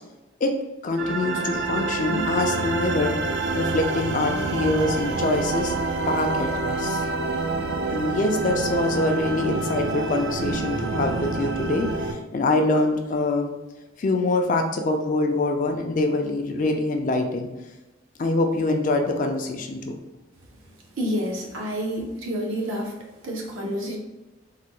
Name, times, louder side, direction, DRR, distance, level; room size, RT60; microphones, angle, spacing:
voice 1, 0.8-3.2 3.5-5.7 6.1-7.1 7.9-13.5 14.0-17.5 18.2-20.0, left 2 dB, 40° left, 4 dB, 0.3 m, -24 dB
sound 1, 1.0-12.1, right 3 dB, 55° right, 0.3 m, -27 dB
voice 2, 21.0-22.9 23.2-24.0, equal, 75° right, 0 dB, 0.7 m, -28 dB
3.2 x 2.2 x 3.0 m, 1.0 s
head